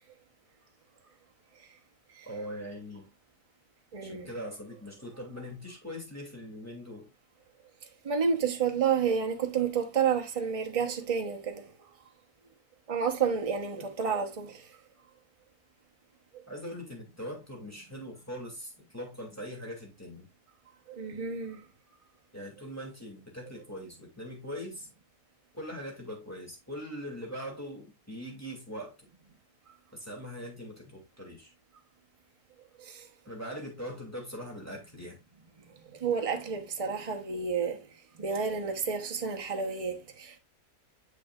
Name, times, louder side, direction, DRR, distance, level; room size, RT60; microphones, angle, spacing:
voice 1, 2.2-3.1 4.0-7.1 13.7-13.9 16.5-20.3 22.3-24.9 25.5-28.9 29.9-31.5 33.3-35.2, equal, 10° left, 2.4 m, -41 dB
voice 2, 3.9-4.3 8.0-11.7 12.9-14.7 20.9-21.6 32.8-33.1 35.9-37.9 38.2-40.4, right 6 dB, 25° right, 0.9 m, -30 dB
7.0 x 6.5 x 2.4 m
omnidirectional pair, 1.7 m